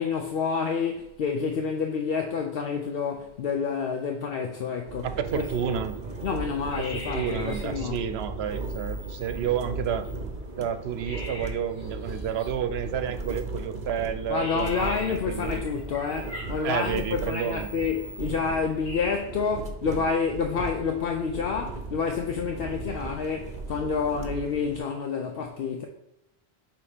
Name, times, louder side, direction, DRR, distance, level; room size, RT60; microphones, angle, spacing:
voice 1, 0.0-5.1 5.3-5.8 6.2-8.0 14.3-25.9, left 5 dB, 70° left, 0.8 m, -29 dB
sound 1, 4.9-24.8, right 3 dB, 45° right, 0.8 m, -37 dB
voice 2, 5.0-6.0 6.8-10.1 10.6-15.6 16.6-17.7, right 8 dB, 80° right, 0.9 m, -30 dB
sound 2, 5.2-19.2, left 1 dB, 35° left, 1.7 m, -44 dB
7.0 x 3.0 x 5.0 m
omnidirectional pair, 1.1 m